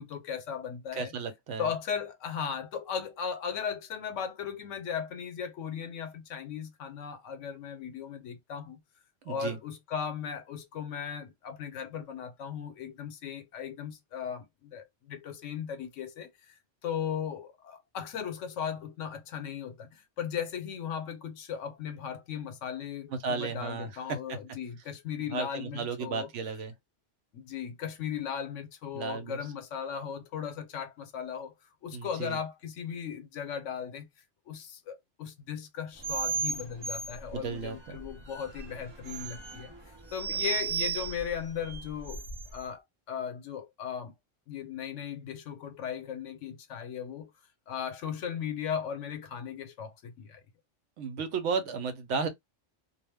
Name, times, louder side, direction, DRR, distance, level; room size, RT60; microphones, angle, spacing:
voice 1, 0.0-1.1 1.6-8.8 9.3-16.5 16.8-26.3 27.3-31.5 31.8-34.1 34.5-39.7 40.1-42.2 42.5-42.8 43.1-44.1 44.5-47.3 47.7-50.4, left 7 dB, 80° left, 1.0 m, -37 dB
voice 2, 1.0-1.7 9.2-9.6 23.1-24.4 25.3-26.7 28.9-29.4 31.9-32.4 37.3-38.0 51.0-52.3, right 5 dB, 75° right, 0.9 m, -34 dB
sound 1, 36.0-42.6, right 6 dB, 45° right, 0.3 m, -36 dB
2.3 x 2.0 x 3.4 m
omnidirectional pair, 1.3 m